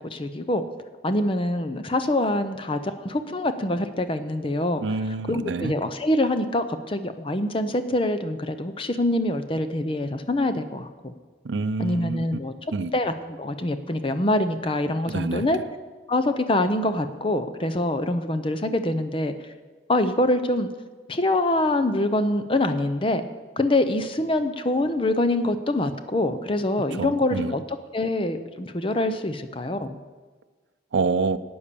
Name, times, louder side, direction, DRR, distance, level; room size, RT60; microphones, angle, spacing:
voice 1, 0.1-0.6 1.0-4.8 5.3-11.1 11.8-12.5 12.9-15.6 16.1-19.3 19.9-20.7 21.1-23.2 23.6-27.6 27.9-30.0, left 1 dB, 30° left, 10 dB, 0.6 m, -25 dB
voice 2, 4.8-5.8 11.4-12.3 12.7-12.9 15.1-15.5 27.0-27.5 30.9-31.4, right 4 dB, 90° right, 14 dB, 0.5 m, -27 dB
12.0 x 8.7 x 6.8 m, 1.4 s
head